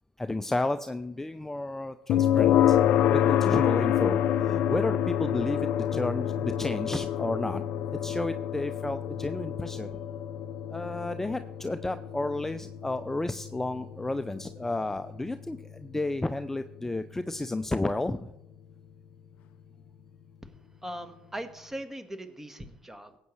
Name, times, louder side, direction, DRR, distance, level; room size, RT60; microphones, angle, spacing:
voice 1, 0.2-7.6 8.0-9.9 10.7-18.3, left 2 dB, 15° left, 10 dB, 0.5 m, -32 dB
sound 1, 2.1-17.0, left 10 dB, 70° left, 0.5 m, -28 dB
voice 2, 20.8-23.2, right 1 dB, 10° right, 8 dB, 1.5 m, -40 dB
18.0 x 8.3 x 3.2 m, 0.85 s
hypercardioid pair, 65°, 3 cm